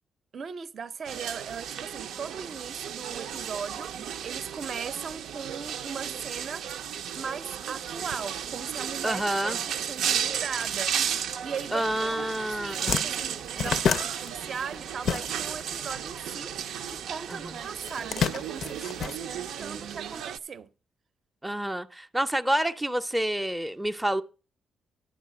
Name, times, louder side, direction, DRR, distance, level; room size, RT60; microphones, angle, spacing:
voice 1, 0.3-6.8 7.1-11.0 11.4-20.7, right 6 dB, 45° right, 0.6 m, -39 dB
sound 1, 1.0-20.4, right 8 dB, 90° right, 0.6 m, -34 dB
voice 2, 9.0-9.6 11.7-13.0 17.3-17.5 21.4-24.2, right 1 dB, 5° right, 0.5 m, -28 dB
sound 2, 12.1-12.3 12.5-15.7 16.0-17.1 17.8-19.8, left 7 dB, 60° left, 0.5 m, -30 dB
11.0 x 4.8 x 7.6 m
cardioid pair, 135°, 0 cm